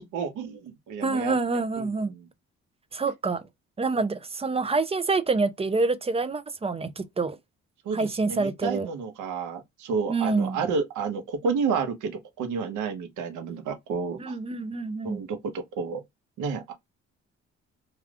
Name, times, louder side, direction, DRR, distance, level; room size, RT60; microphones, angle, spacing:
voice 1, 0.1-1.3 1.8-2.2 3.9-4.0 7.9-14.4 15.0-16.0 16.4-16.7, right 5 dB, 85° right, 0.9 m, -31 dB
voice 2, 1.0-2.1 2.9-3.4 3.8-7.4 7.9-8.9 10.1-10.6 14.2-15.2, right 3 dB, 20° right, 0.4 m, -27 dB
3.4 x 2.4 x 2.3 m
cardioid pair, 90°, 30 cm